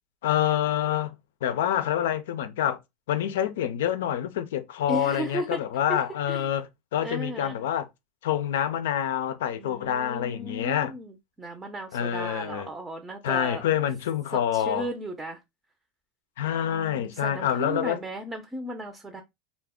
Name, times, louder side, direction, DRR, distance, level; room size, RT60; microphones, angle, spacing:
voice 1, 0.2-1.1 1.4-2.8 3.1-6.7 6.9-7.9 8.2-10.9 11.9-12.7 13.2-14.9 16.4-18.0, left 10 dB, 85° left, 0.4 m, -27 dB
voice 2, 4.9-5.6 5.9-6.0 6.3-6.5 7.0-7.6 9.6-13.7 14.3-15.4 16.6-19.2, right 1 dB, 15° right, 0.5 m, -35 dB
2.4 x 2.1 x 3.5 m
supercardioid pair, 120°, 0 cm